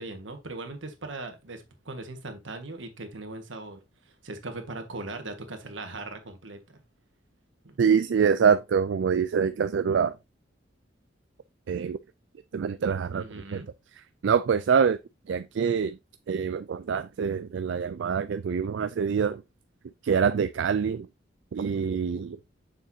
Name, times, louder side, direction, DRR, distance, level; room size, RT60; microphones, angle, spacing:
voice 1, 0.0-6.8 7.6-7.8 13.0-13.7, right 2 dB, 90° right, 1.6 m, -39 dB
voice 2, 7.8-10.1 11.7-12.0 12.5-13.2 13.5-13.6 14.2-15.0 15.3-16.0 16.3-19.4 20.0-21.1 21.5-22.4, right 6 dB, 70° right, 0.4 m, -25 dB
6.7 x 6.2 x 2.7 m
head